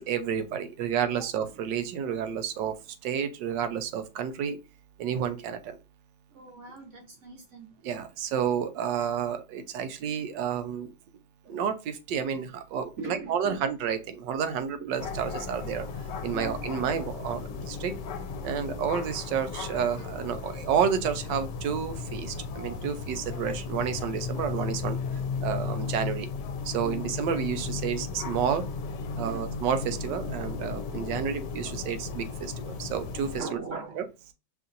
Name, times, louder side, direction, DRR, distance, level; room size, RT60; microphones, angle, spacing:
voice 1, 0.0-2.8 3.0-4.6 5.0-5.8 7.8-10.9 11.5-15.9 16.2-17.9 18.4-25.0 25.4-26.3 26.6-28.6 29.2-33.6 34.0-34.1, right 8 dB, 80° right, 1.3 m, -30 dB
voice 2, 6.3-7.7 11.4-11.6 13.0-13.6 14.8-14.9 16.3-16.6 18.5-18.8 20.6-20.7 26.8-27.2 29.2-29.5 33.4-34.1, right 4 dB, 50° right, 1.2 m, -41 dB
sound 1, 15.0-33.4, left 5 dB, 75° left, 1.2 m, -35 dB
5.6 x 2.6 x 2.5 m
omnidirectional pair, 1.9 m